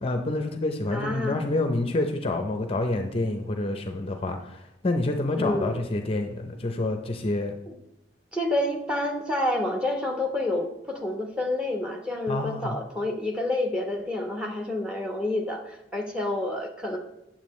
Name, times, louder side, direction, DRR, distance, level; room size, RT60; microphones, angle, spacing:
voice 1, 0.0-7.5 12.3-12.7, left 2 dB, 30° left, 5 dB, 0.6 m, -28 dB
voice 2, 0.9-1.4 5.4-5.8 7.7-7.8 8.3-17.0, left 1 dB, 5° right, 2 dB, 1.0 m, -28 dB
8.8 x 7.3 x 3.1 m, 0.91 s
head